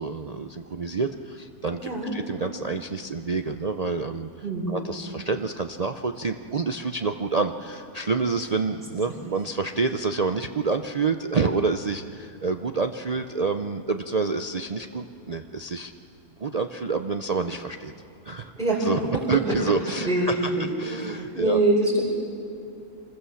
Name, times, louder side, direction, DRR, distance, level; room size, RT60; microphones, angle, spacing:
voice 1, 0.0-4.3 4.7-15.9 16.4-17.9 18.3-18.5 18.8-20.3 20.8-21.6, right 4 dB, 70° right, 6 dB, 0.3 m, -28 dB
voice 2, 4.4-4.7 18.6-18.9 20.0-20.6 21.3-22.0, right 2 dB, ahead, -6 dB, 4.9 m, -23 dB
26.0 x 21.0 x 7.0 m, 2.6 s
omnidirectional pair, 1.6 m